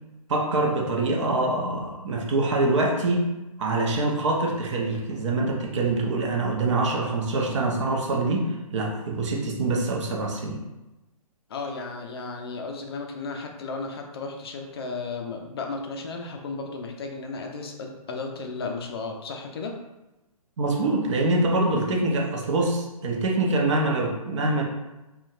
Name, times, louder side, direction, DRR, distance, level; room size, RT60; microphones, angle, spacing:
voice 1, 0.3-3.3 3.6-10.6 20.6-24.6, right 2 dB, 50° right, 0 dB, 0.7 m, -25 dB
voice 2, 11.5-19.7, left 4 dB, 40° left, 3 dB, 0.4 m, -34 dB
3.8 x 2.2 x 2.4 m, 1.0 s
figure-of-eight pair, 140°, 19 cm